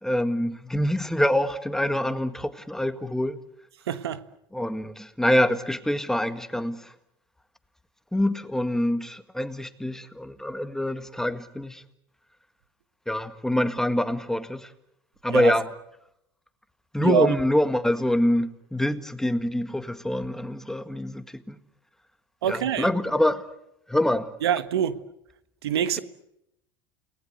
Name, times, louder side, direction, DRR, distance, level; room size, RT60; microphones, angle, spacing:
voice 1, 0.0-3.4 4.5-6.9 8.1-11.8 13.1-14.7 15.2-15.7 16.9-21.6 22.5-23.5 23.9-24.3, left 1 dB, 5° left, 1.8 m, -25 dB
voice 2, 3.9-4.2 15.3-15.5 17.0-17.3 22.4-22.9 24.4-25.0 25.6-26.0, right 9 dB, 85° right, 1.4 m, -25 dB
29.5 x 20.0 x 8.0 m
hypercardioid pair, 95°, 13 cm